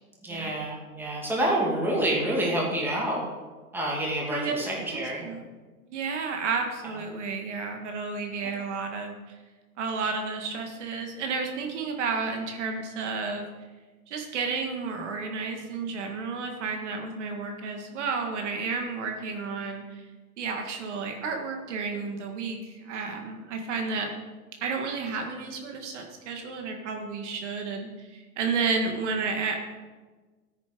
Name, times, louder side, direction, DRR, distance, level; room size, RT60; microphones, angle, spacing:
voice 1, 0.2-3.2 3.7-5.3, right 1 dB, 5° right, -4 dB, 2.5 m, -28 dB
voice 2, 4.9-5.4 5.9-9.4 9.8-13.5 14.1-20.0 20.4-24.1 24.6-29.6, right 4 dB, 50° right, 3 dB, 2.0 m, -31 dB
13.5 x 9.6 x 5.2 m, 1.3 s
hypercardioid pair, 150°, 45 cm